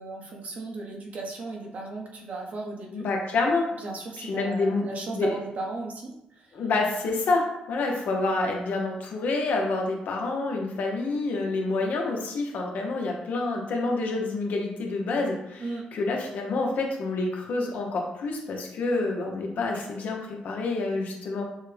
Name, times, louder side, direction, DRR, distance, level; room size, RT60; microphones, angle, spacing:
voice 1, 0.0-3.1 3.8-6.4 15.6-15.9, right 3 dB, 60° right, 0 dB, 1.0 m, -36 dB
voice 2, 2.9-3.7 4.2-5.4 6.5-21.4, left 3 dB, 70° left, 1 dB, 0.9 m, -28 dB
6.4 x 2.2 x 3.3 m, 0.85 s
cardioid pair, 90°, 3 cm